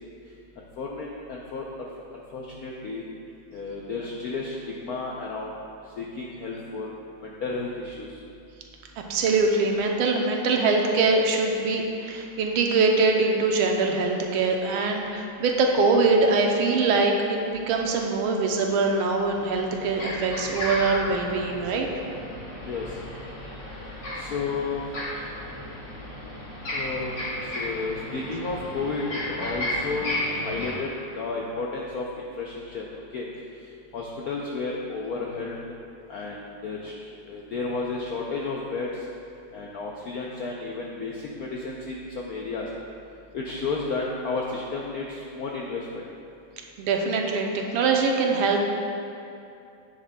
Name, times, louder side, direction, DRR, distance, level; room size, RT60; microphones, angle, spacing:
voice 1, 0.6-1.9 2.3-3.0 3.5-5.6 6.0-6.9 7.2-8.2 22.6-23.0 24.1-25.3 26.7-32.8 33.1-33.3 33.6-35.7 36.1-39.1 39.5-42.7 43.3-46.0, left 3 dB, 80° left, -2 dB, 0.8 m, -32 dB
voice 2, 9.0-21.9 46.8-48.6, right 3 dB, 90° right, 2 dB, 1.6 m, -23 dB
sound 1, 19.1-30.7, left 1 dB, 40° left, 1.6 m, -34 dB
10.0 x 7.4 x 2.2 m, 2.6 s
omnidirectional pair, 2.3 m